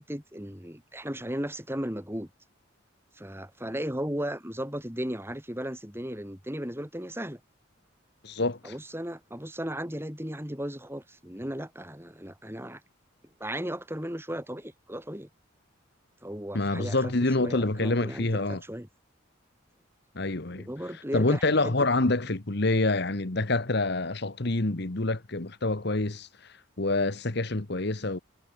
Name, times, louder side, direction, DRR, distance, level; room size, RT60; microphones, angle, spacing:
voice 1, 0.0-2.3 3.2-7.4 8.6-12.8 13.4-15.3 16.2-17.1 17.4-18.9 20.5-21.9, equal, 10° right, 5.4 m, -36 dB
voice 2, 8.2-8.7 16.5-18.6 20.1-20.7 21.1-26.3 26.8-28.2, left 2 dB, 55° left, 1.4 m, -27 dB
head